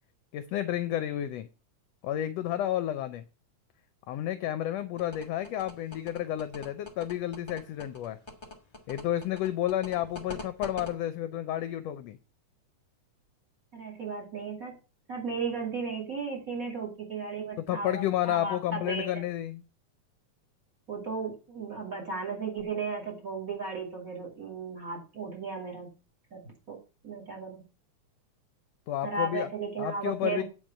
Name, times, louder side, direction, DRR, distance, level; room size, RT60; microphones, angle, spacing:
voice 1, 0.3-1.5 2.0-3.2 4.1-8.2 8.9-12.2 17.6-19.6 28.9-29.5 29.8-30.4, left 12 dB, 75° left, 11 dB, 1.6 m, -31 dB
sound 1, 5.0-10.9, left 2 dB, 45° left, 0.3 m, -43 dB
voice 2, 13.7-14.8 15.1-19.1 20.9-25.9 26.3-26.4 26.7-26.8 27.0-27.6 29.0-30.4, right 4 dB, 30° right, 2 dB, 2.7 m, -35 dB
9.4 x 4.8 x 7.3 m, 0.34 s
omnidirectional pair, 3.4 m